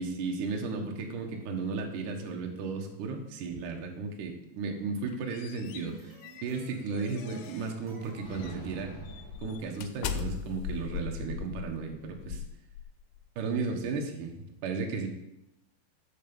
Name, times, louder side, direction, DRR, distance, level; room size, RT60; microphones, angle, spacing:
voice 1, 0.0-6.1 6.4-8.9 9.4-12.4 13.4-14.4 14.6-15.1, right 4 dB, 60° right, 2 dB, 2.3 m, -34 dB
sound 1, 4.9-7.8 8.3-8.6 9.0-13.2, left 7 dB, 90° left, 3.0 m, -39 dB
sound 2, 5.5-9.6, right 1 dB, 45° right, 3.0 m, -52 dB
sound 3, 8.2-10.4, right 3 dB, 30° right, 2.0 m, -46 dB
13.0 x 4.6 x 7.0 m, 0.88 s
omnidirectional pair, 5.2 m